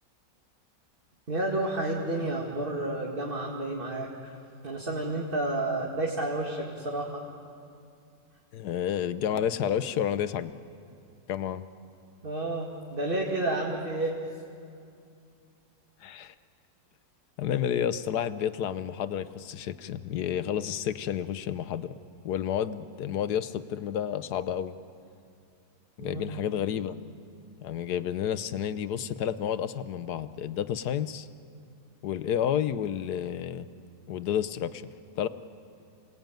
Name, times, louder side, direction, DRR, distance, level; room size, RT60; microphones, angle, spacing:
voice 1, 1.3-4.3 4.6-7.2 12.2-14.2 26.0-26.4, right 2 dB, 30° right, -1 dB, 2.2 m, -31 dB
voice 2, 8.5-10.5 11.3-11.6 16.0-16.3 17.4-21.9 22.2-24.7 26.0-26.9 27.6-31.3 32.0-33.7 34.1-34.9 35.2-35.3, left 9 dB, 65° left, 13 dB, 1.3 m, -30 dB
28.0 x 19.5 x 9.1 m, 2.4 s
omnidirectional pair, 1.9 m